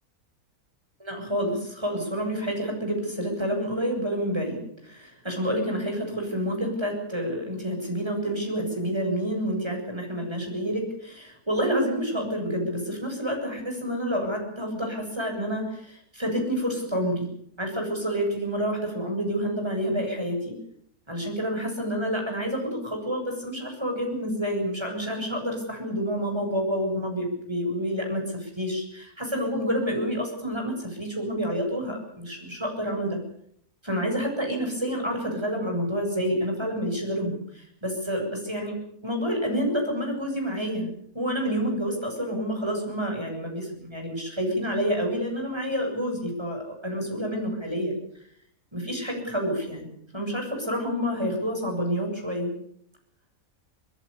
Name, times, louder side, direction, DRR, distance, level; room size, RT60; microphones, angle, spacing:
voice 1, 1.0-17.3 17.6-20.5 21.1-33.2 33.8-38.8 39.0-40.9 41.1-47.9 48.7-49.9 50.1-52.5, equal, 15° right, 2 dB, 7.7 m, -28 dB
24.0 x 21.0 x 6.9 m, 0.66 s
omnidirectional pair, 1.6 m